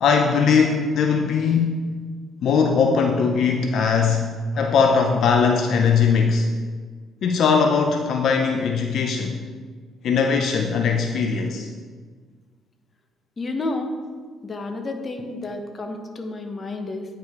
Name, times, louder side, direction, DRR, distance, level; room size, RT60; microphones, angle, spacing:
voice 1, 0.0-1.9 2.4-6.5 7.2-9.4 10.0-11.7, left 5 dB, 65° left, 3 dB, 0.5 m, -20 dB
voice 2, 13.4-13.9 14.4-17.1, left 2 dB, 35° left, 5 dB, 0.9 m, -30 dB
9.2 x 4.8 x 3.6 m, 1.5 s
cardioid pair, 80°, 0 cm